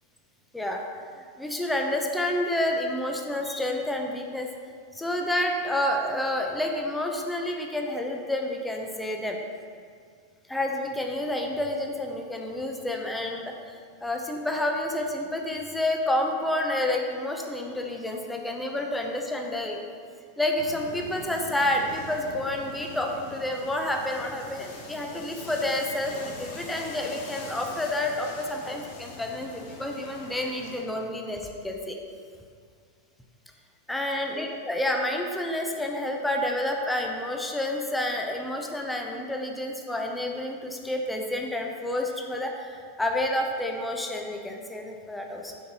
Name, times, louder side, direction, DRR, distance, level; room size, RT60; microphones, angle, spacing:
voice 1, 1.2-4.5 4.9-9.4 10.5-19.8 20.4-32.0 33.9-45.6, left 1 dB, 5° left, 2 dB, 0.6 m, -29 dB
sound 1, 20.6-30.8, left 3 dB, 50° left, 0.8 m, -43 dB
6.4 x 5.3 x 2.8 m, 2.1 s
figure-of-eight pair, 90°, 0 cm